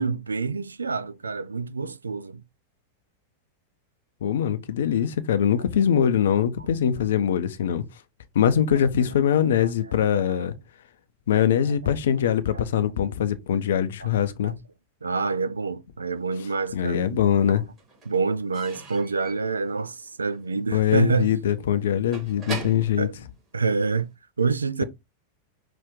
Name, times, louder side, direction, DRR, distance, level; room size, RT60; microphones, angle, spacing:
voice 1, 0.0-2.4 8.7-8.8 9.6-9.7 10.3-10.5 14.0-14.1 14.4-14.5 15.0-17.6 18.1-21.3 23.0-23.1 23.5-24.1 24.4-24.8, right 4 dB, 75° right, 0.3 m, -27 dB
voice 2, 4.2-7.8 8.3-10.5 11.3-14.5 16.7-17.6 20.7-23.1, left 9 dB, 60° left, 0.5 m, -22 dB
Slam / Squeak / Wood, 16.3-17.1 17.4-24.1, right 3 dB, 25° right, 2.5 m, -41 dB
5.7 x 2.5 x 3.7 m
figure-of-eight pair, 90°, 0 cm